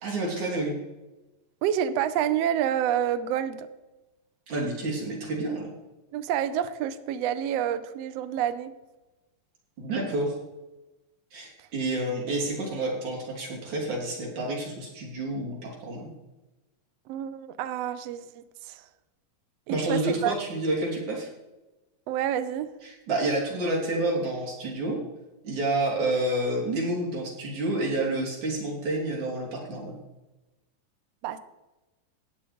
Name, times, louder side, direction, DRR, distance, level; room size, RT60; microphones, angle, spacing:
voice 1, 0.0-0.8 4.5-5.7 9.8-10.4 11.3-16.1 19.7-21.3 22.8-25.0 25.4-30.0, right 2 dB, 60° right, -1 dB, 4.5 m, -29 dB
voice 2, 1.6-3.7 6.1-8.7 17.1-18.8 19.7-20.3 22.1-22.7 31.2-31.4, right 10 dB, 85° right, 12 dB, 1.4 m, -28 dB
14.5 x 9.2 x 5.1 m, 1.1 s
omnidirectional pair, 3.9 m